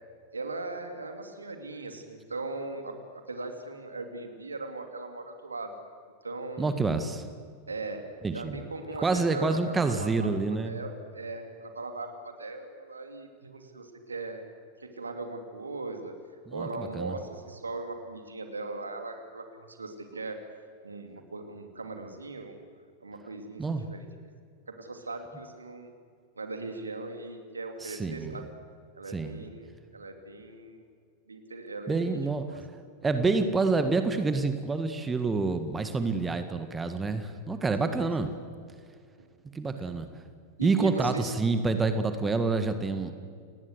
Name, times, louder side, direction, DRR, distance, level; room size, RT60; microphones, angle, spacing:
voice 1, 0.3-5.7 6.2-6.8 7.7-8.1 8.3-10.3 10.6-14.5 14.8-16.1 16.5-20.4 20.8-22.6 23.0-24.0 24.7-25.9 26.4-28.4 28.9-30.9 31.3-32.2 32.5-32.6 37.8-38.0 39.2-39.3 39.8-39.9 40.6-41.3, right 3 dB, 75° right, 6 dB, 2.9 m, -39 dB
voice 2, 6.6-7.3 8.2-8.6 9.0-10.8 16.5-17.2 23.6-23.9 27.8-28.3 29.1-29.4 31.9-32.4 33.0-38.3 39.5-40.1 40.6-43.1, right 3 dB, 15° right, 9 dB, 1.7 m, -28 dB
29.5 x 19.5 x 8.2 m, 2.2 s
figure-of-eight pair, 90°, 0 cm